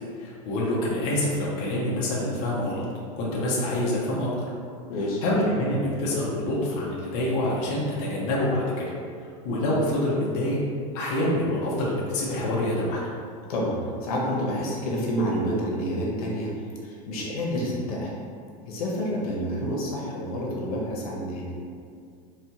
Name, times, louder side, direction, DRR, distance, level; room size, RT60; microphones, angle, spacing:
voice 1, 0.2-2.8 3.2-4.3 5.2-8.9 9.2-10.6 10.9-13.0, left 1 dB, 40° left, -5 dB, 0.6 m, -26 dB
voice 2, 4.9-5.2 13.5-16.5 16.8-18.1 18.7-21.5, equal, 85° left, -3 dB, 0.9 m, -28 dB
4.1 x 2.2 x 2.8 m, 2.2 s
supercardioid pair, 170°, 19 cm